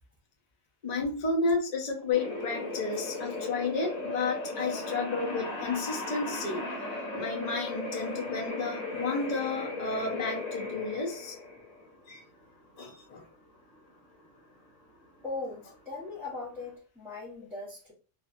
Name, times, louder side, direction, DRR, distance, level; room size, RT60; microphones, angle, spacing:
voice 1, 0.8-6.7 7.1-11.4 12.1-12.2 12.8-13.3, left 4 dB, 45° left, 0 dB, 0.6 m, -32 dB
sound 1, 2.1-16.7, left 2 dB, 85° left, 1.3 m, -37 dB
voice 2, 15.2-17.9, left 3 dB, ahead, -8 dB, 0.6 m, -39 dB
2.7 x 2.5 x 2.4 m, 0.37 s
omnidirectional pair, 1.3 m